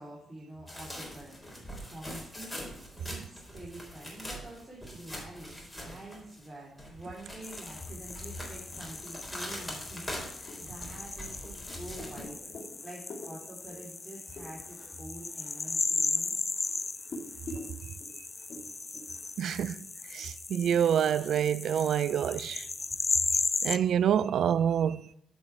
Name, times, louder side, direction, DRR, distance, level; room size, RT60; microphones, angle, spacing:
voice 1, 0.0-12.5 12.8-16.3, right 1 dB, 25° right, 3.3 m, -46 dB
sound 1, 0.7-6.5 6.8-12.2, equal, 10° left, 3.8 m, -43 dB
sound 2, 7.4-23.8, left 3 dB, 35° left, 0.4 m, -36 dB
sound 3, 8.3-19.6, left 2 dB, 55° left, 2.2 m, -49 dB
voice 2, 19.4-19.8 20.1-22.7 23.6-25.0, right 9 dB, 70° right, 0.3 m, -27 dB
8.8 x 5.5 x 4.6 m
hypercardioid pair, 45°, 0 cm